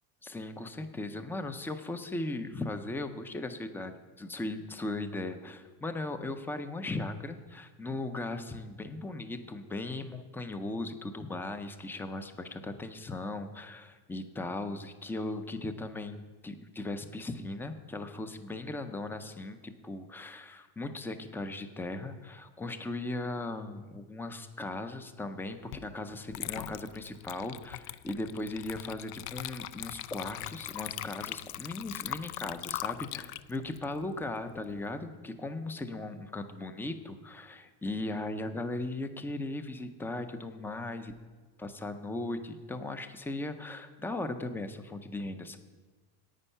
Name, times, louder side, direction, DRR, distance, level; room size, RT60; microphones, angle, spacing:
voice 1, 0.2-41.1 41.6-45.6, left 2 dB, 5° left, 9 dB, 0.3 m, -38 dB
Water / Liquid, 25.7-25.9 26.3-34.8, left 15 dB, 75° left, 0.6 m, -40 dB
9.9 x 8.9 x 5.5 m, 1.3 s
cardioid pair, 125°, 49 cm